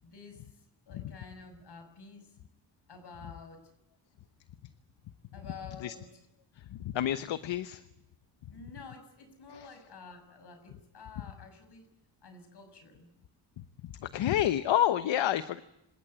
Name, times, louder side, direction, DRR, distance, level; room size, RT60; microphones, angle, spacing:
voice 1, 0.0-2.4 2.9-3.7 5.3-6.2 8.5-11.9 12.2-13.1, left 4 dB, 60° left, 9 dB, 6.6 m, -50 dB
voice 2, 6.8-7.8 14.0-15.6, left 11 dB, 80° left, 12 dB, 1.0 m, -28 dB
27.0 x 17.5 x 8.9 m, 0.85 s
cardioid pair, 80°, 45 cm